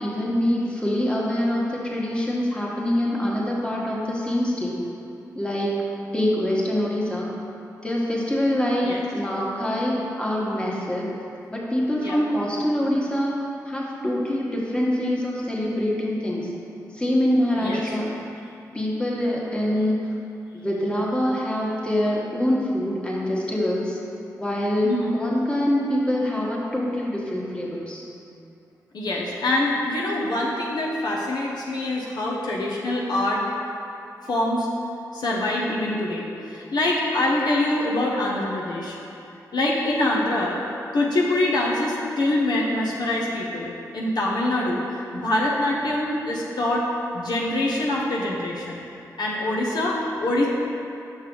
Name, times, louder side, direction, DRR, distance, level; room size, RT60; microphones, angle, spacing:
voice 1, 0.0-4.8 5.3-5.7 6.1-7.3 7.8-11.1 11.5-13.4 13.6-16.5 16.9-18.1 18.7-20.0 20.5-24.0 24.4-28.0, left 1 dB, 15° left, -4 dB, 1.5 m, -24 dB
voice 2, 17.5-18.0 24.8-25.1 28.9-33.4 34.2-34.7 35.1-39.0 39.5-40.6 40.9-46.8 47.1-48.9 49.2-50.5, left 1 dB, 70° left, -4 dB, 0.9 m, -24 dB
6.1 x 5.6 x 3.8 m, 2.7 s
cardioid pair, 45°, 7 cm